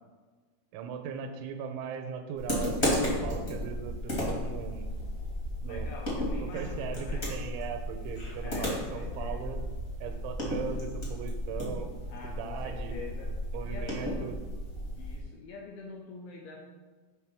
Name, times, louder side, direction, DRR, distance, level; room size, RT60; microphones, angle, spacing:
voice 1, 0.7-4.8 5.6-5.9 6.4-9.6 10.0-11.9 12.2-13.0 13.5-14.4, right 7 dB, 90° right, 6 dB, 3.0 m, -39 dB
sound 1, 2.4-15.2, equal, 55° left, 0.8 m, -34 dB
voice 2, 5.7-7.3 8.4-9.6 12.1-13.3 13.7-14.3 15.0-16.6, left 3 dB, 80° left, -1 dB, 2.2 m, -45 dB
7.6 x 3.6 x 6.1 m, 1.4 s
omnidirectional pair, 5.3 m